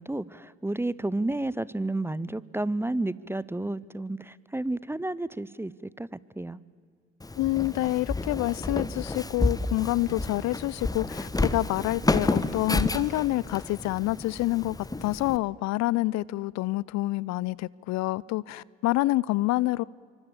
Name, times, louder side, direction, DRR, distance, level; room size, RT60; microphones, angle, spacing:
voice 1, 0.0-6.6, right 2 dB, 5° right, 20 dB, 0.6 m, -31 dB
Walk footsteps, 7.2-15.4, left 2 dB, 10° left, 1.2 m, -30 dB
voice 2, 7.4-19.8, left 18 dB, 55° left, 24 dB, 0.5 m, -27 dB
25.5 x 25.0 x 7.3 m, 2.1 s
hypercardioid pair, 55°, 33 cm